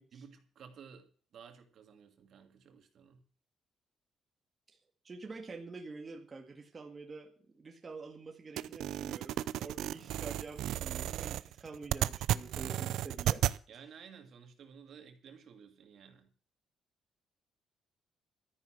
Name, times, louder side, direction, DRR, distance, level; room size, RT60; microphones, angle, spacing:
voice 1, 0.1-3.2 13.7-16.3, right 7 dB, 55° right, 5 dB, 2.7 m, -54 dB
voice 2, 5.0-13.4, right 4 dB, 25° right, 2 dB, 2.0 m, -47 dB
sound 1, 8.6-13.6, right 13 dB, 85° right, 0.6 m, -34 dB
13.5 x 10.5 x 6.2 m, 0.42 s
cardioid pair, 155°, 0 cm